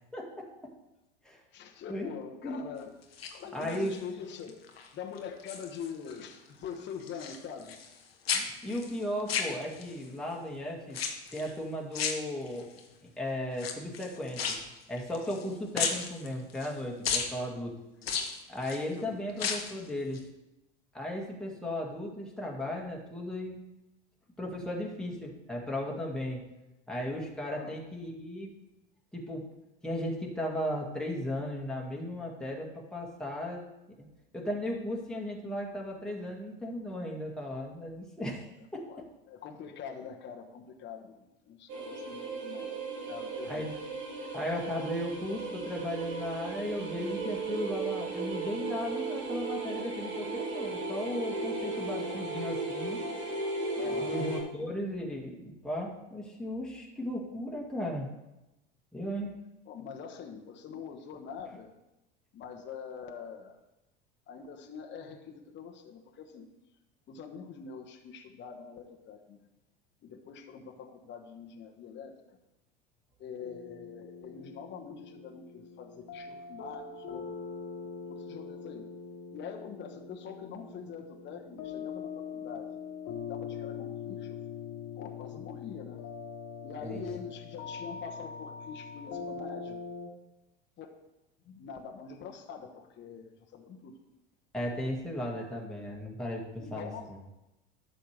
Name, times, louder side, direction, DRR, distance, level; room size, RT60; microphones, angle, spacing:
voice 1, 0.1-0.5 1.2-1.4 1.9-2.1 2.4-2.6 3.5-3.9 8.3-11.0 11.3-12.7 13.2-14.6 14.9-17.7 18.5-20.3 20.9-23.6 24.4-26.4 26.9-28.5 29.1-29.5 29.8-33.6 34.3-38.9 43.5-43.7 44.3-53.0 53.8-58.1 58.9-59.3 86.8-87.0 94.5-97.2, left 1 dB, ahead, -2 dB, 1.9 m, -36 dB
voice 2, 1.5-2.9 3.3-4.6 4.9-7.8 12.6-12.7 18.9-19.1 27.5-27.8 38.9-42.7 43.1-43.8 51.7-51.8 53.7-54.2 59.7-61.7 62.3-63.6 64.3-66.5 67.1-69.4 70.0-72.4 73.2-77.3 78.1-78.9 79.3-82.7 83.2-84.4 85.0-86.0 86.6-89.8 90.8-90.9 91.4-93.9 96.6-97.3, left 7 dB, 40° left, 2 dB, 1.1 m, -44 dB
sound 1, 3.0-4.0 4.5-4.9 5.2-6.2 6.5-8.0 8.3-10.0 10.9-11.5 11.9-12.8 13.5-15.5 15.7-16.7 17.0-17.3 18.0-18.8 19.3-19.8 20.1-20.2, left 6 dB, 85° left, 1.0 m, -34 dB
sound 2, 41.7-54.4, right 3 dB, 70° right, 2.9 m, -36 dB
sound 3, 73.4-90.1, left 6 dB, 55° left, 1.6 m, -42 dB
11.5 x 6.7 x 3.4 m, 0.96 s
hypercardioid pair, 75°, 29 cm